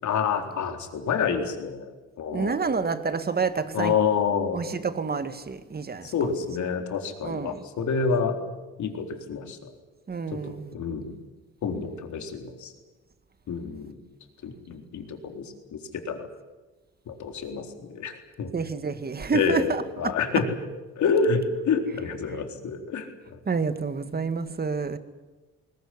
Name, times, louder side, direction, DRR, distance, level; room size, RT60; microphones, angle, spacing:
voice 1, 0.0-1.9 2.2-2.7 3.7-4.6 6.0-8.4 8.8-9.7 10.4-11.1 11.6-12.7 13.5-14.0 14.4-15.8 16.1-16.2 17.1-18.5 19.3-20.6 21.0-23.1, left 5 dB, 70° left, 4.0 m, -28 dB
voice 2, 2.3-3.9 4.5-6.1 7.2-7.6 10.1-10.7 18.5-20.1 23.5-25.0, right 4 dB, 30° right, 2.0 m, -28 dB
21.0 x 20.0 x 10.0 m
cardioid pair, 90°, 30 cm